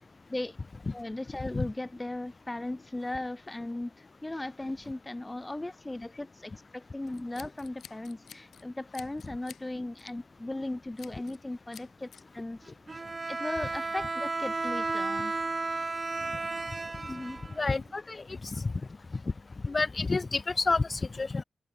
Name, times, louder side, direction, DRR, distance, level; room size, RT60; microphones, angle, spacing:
voice 1, 0.9-12.7 13.3-15.3 17.1-17.4, left 2 dB, 20° left, 1.0 m, -37 dB
Scissors, 7.1-8.6 8.9-9.7 10.0-10.2 11.0-11.4 11.7-12.2, left 8 dB, 80° left, 3.2 m, -51 dB
Bowed string instrument, 12.9-17.9, right 3 dB, 40° right, 0.6 m, -33 dB
voice 2, 17.6-18.2 19.6-21.4, left 3 dB, 45° left, 1.1 m, -28 dB
supercardioid pair, 40°, 0 cm